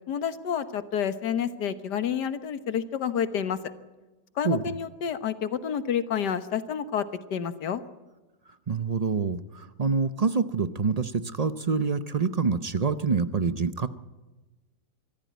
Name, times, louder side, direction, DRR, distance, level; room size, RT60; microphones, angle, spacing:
voice 1, 0.1-3.6 4.4-7.8, left 8 dB, 85° left, 11 dB, 1.8 m, -29 dB
voice 2, 8.7-13.9, right 5 dB, 45° right, 12 dB, 0.5 m, -26 dB
24.5 x 15.5 x 9.4 m, 1.2 s
omnidirectional pair, 1.8 m